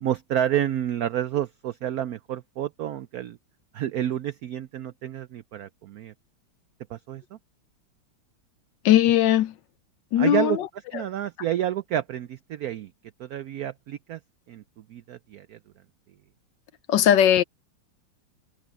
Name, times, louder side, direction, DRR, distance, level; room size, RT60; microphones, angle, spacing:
voice 1, 0.0-3.4 3.7-6.1 6.9-7.4 10.2-10.6 10.9-12.9 13.2-14.2 14.5-14.6 14.9-15.6, right 11 dB, 80° right, 0.8 m, -29 dB
voice 2, 8.8-9.6 10.1-10.7 10.9-11.0 16.9-17.4, left 11 dB, 70° left, 1.3 m, -19 dB
omnidirectional pair, 2.2 m